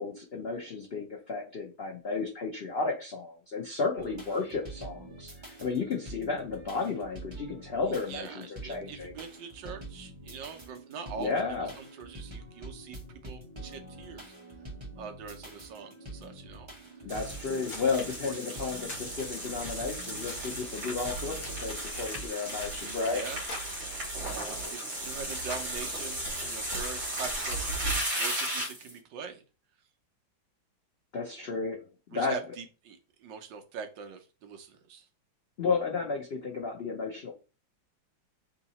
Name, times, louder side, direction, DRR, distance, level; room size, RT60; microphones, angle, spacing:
voice 1, 0.0-5.3 5.6-9.1 11.2-11.7 17.0-23.2 23.9-24.4 31.1-31.8 32.1-32.4 35.6-37.3, left 4 dB, 75° left, 0 dB, 0.5 m, -33 dB
sound 1, 4.0-22.3, right 1 dB, 25° right, 0.7 m, -46 dB
voice 2, 8.1-14.3 15.0-16.7 18.0-18.8 22.8-23.4 24.3-26.2 26.4-27.7 28.1-29.4 32.1-35.1, right 6 dB, 75° right, 6 dB, 1.3 m, -43 dB
sound 2, 16.9-26.2, left 2 dB, 50° left, 1.3 m, -50 dB
sound 3, 17.1-28.9, right 1 dB, 50° right, 1.7 m, -35 dB
3.6 x 2.8 x 4.1 m, 0.33 s
omnidirectional pair, 2.1 m